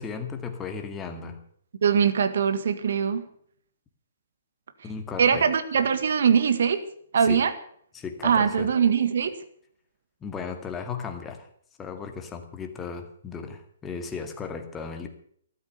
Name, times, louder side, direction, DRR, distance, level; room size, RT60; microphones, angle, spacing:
voice 1, 0.0-1.4 4.8-5.5 7.2-7.5 7.9-8.7 10.2-11.5 11.8-15.1, left 5 dB, 15° left, 5 dB, 2.1 m, -35 dB
voice 2, 1.8-3.2 5.2-6.8 7.1-7.5 8.2-9.3, right 7 dB, 60° right, 10 dB, 1.7 m, -22 dB
13.5 x 12.5 x 6.8 m, 0.63 s
figure-of-eight pair, 125°, 0 cm